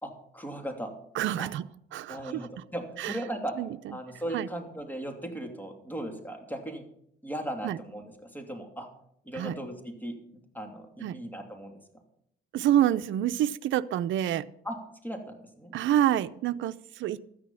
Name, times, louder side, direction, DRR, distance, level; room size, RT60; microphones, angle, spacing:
voice 1, 0.0-0.9 1.4-1.5 2.1-3.6 3.9-6.8 7.2-8.9 9.2-11.7 14.6-14.8 15.0-15.7, right 1 dB, 10° left, 3 dB, 2.8 m, -37 dB
voice 2, 1.2-1.6 1.9-2.4 3.0-3.2 3.6-3.7 4.3-4.5 7.6-7.8 9.4-9.5 11.0-11.2 12.5-14.4 15.7-17.2, right 11 dB, 75° right, 12 dB, 0.6 m, -27 dB
13.0 x 9.8 x 5.7 m, 0.71 s
cardioid pair, 90°, 20 cm